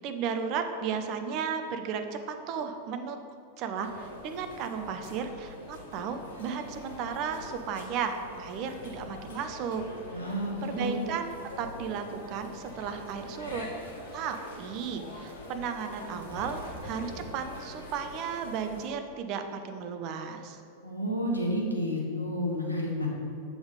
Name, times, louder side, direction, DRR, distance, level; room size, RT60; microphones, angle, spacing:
voice 1, 0.0-3.2 3.6-9.8 10.6-13.7 14.1-20.6, right 6 dB, 40° right, 7 dB, 0.5 m, -34 dB
sound 1, 3.8-18.9, left 1 dB, 60° left, 0.9 m, -44 dB
voice 2, 10.1-11.0 20.8-23.1, equal, 85° left, -2 dB, 0.9 m, -30 dB
6.9 x 3.7 x 3.7 m, 2.5 s
figure-of-eight pair, 90°, 0 cm